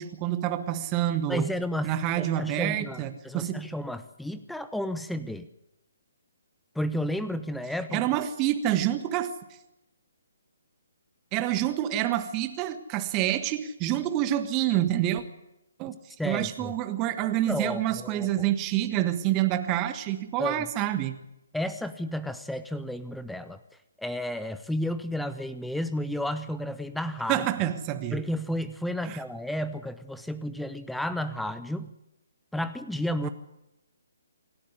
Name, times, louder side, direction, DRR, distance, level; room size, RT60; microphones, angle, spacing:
voice 1, 0.0-1.5 1.8-3.6 7.9-9.3 11.3-15.2 15.8-21.2 27.3-28.2 29.0-29.2 33.2-33.3, right 12 dB, 20° right, 9 dB, 1.3 m, -27 dB
voice 2, 1.3-5.5 6.7-8.1 16.2-16.7 17.5-18.5 20.4-20.7 21.5-23.6 24.0-27.4 28.1-31.9 32.5-33.3, left 1 dB, ahead, 13 dB, 0.8 m, -32 dB
26.5 x 12.0 x 9.8 m, 0.89 s
figure-of-eight pair, 135°, 0 cm